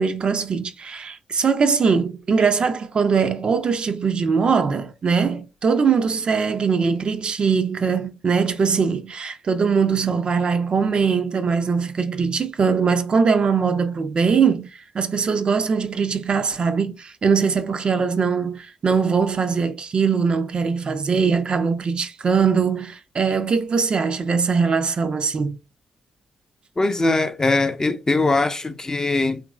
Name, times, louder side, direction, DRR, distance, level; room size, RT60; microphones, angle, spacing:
voice 1, 0.0-14.7 14.9-25.6, right 5 dB, 45° right, 0.4 m, -21 dB
voice 2, 26.8-29.4, left 2 dB, 25° left, 0.4 m, -21 dB
2.9 x 2.5 x 2.2 m
hypercardioid pair, 40°, 2 cm